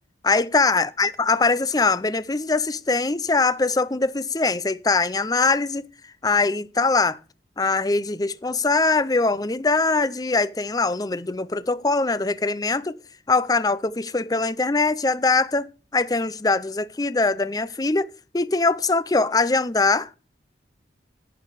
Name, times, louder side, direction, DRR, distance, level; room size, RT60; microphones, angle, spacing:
voice 1, 0.2-5.8 6.2-7.2 7.6-13.0 13.3-15.7 15.9-18.1 18.3-20.1, left 3 dB, 20° left, 0.5 m, -22 dB
11.5 x 8.8 x 4.9 m
head